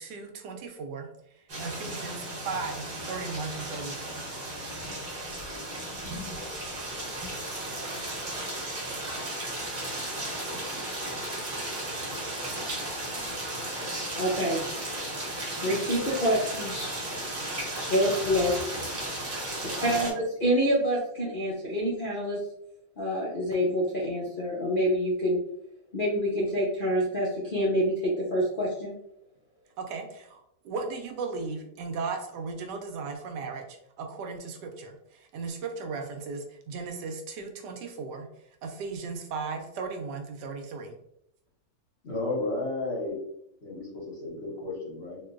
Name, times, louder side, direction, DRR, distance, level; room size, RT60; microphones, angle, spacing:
voice 1, 0.0-4.2 19.8-20.1 29.8-38.3 38.6-41.0, right 4 dB, 80° right, 4 dB, 1.2 m, -36 dB
sound 1, 1.5-20.1, right 1 dB, 40° right, 0.9 m, -35 dB
voice 2, 14.2-14.6 15.6-16.7 17.9-18.5 19.6-22.4 23.0-25.4 25.9-28.9, equal, 75° left, -5 dB, 0.4 m, -27 dB
voice 3, 42.0-43.2 43.6-45.2, left 2 dB, 40° left, -6 dB, 1.3 m, -33 dB
3.6 x 2.5 x 2.4 m, 0.78 s
omnidirectional pair, 1.8 m